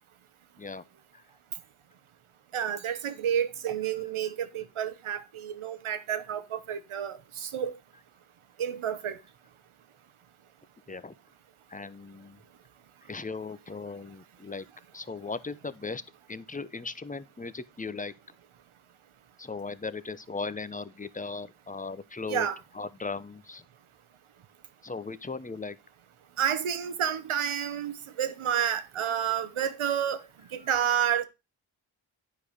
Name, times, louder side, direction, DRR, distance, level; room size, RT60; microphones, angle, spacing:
voice 1, 2.5-7.7 8.6-9.2 22.3-22.6 26.4-30.2 30.5-31.2, right 9 dB, 80° right, 1.0 m, -30 dB
voice 2, 11.7-12.4 13.1-14.7 14.9-16.0 16.3-18.1 19.4-22.5 22.7-23.6 24.8-25.8 30.6-30.7, left 4 dB, 15° left, 0.7 m, -37 dB
9.4 x 4.8 x 5.0 m
cardioid pair, 45°, 48 cm